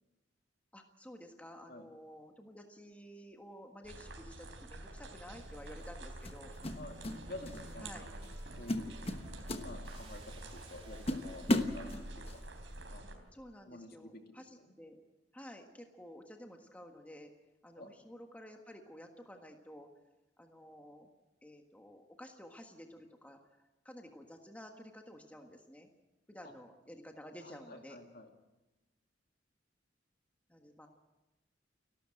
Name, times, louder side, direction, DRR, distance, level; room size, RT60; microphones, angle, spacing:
voice 1, 0.7-6.5 7.8-8.1 13.3-15.0 15.3-17.3 17.6-19.9 20.4-21.1 21.4-23.4 23.8-25.9 26.3-28.0 30.5-30.9, equal, 10° left, 3 dB, 1.5 m, -52 dB
sound 1, 3.8-13.1, right 1 dB, 80° right, 3.8 m, -48 dB
sound 2, 4.9-5.1 6.2-7.2 7.5-7.8 8.2-8.4 8.7-10.2 10.6-10.7 11.1-12.4, left 1 dB, 30° left, 1.2 m, -34 dB
sound 3, 6.6-11.9, right 1 dB, 30° right, 3.0 m, -54 dB
voice 2, 7.3-8.1 8.6-9.0 9.6-11.4 11.7-12.4 12.9-13.3 13.7-14.7 17.8-17.9 27.4-28.3, left 2 dB, 55° left, 4 dB, 2.4 m, -50 dB
30.0 x 12.5 x 7.7 m, 1.0 s
head